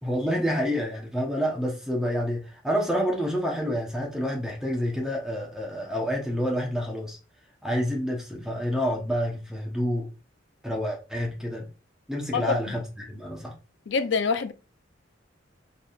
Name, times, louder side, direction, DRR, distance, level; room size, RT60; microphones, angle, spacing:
voice 1, 0.0-7.2 7.6-10.1 10.6-11.7 12.1-13.5, equal, 5° right, 0.8 m, -28 dB
voice 2, 12.3-12.8 13.9-14.5, left 5 dB, 65° left, 0.5 m, -26 dB
4.2 x 3.5 x 2.4 m
head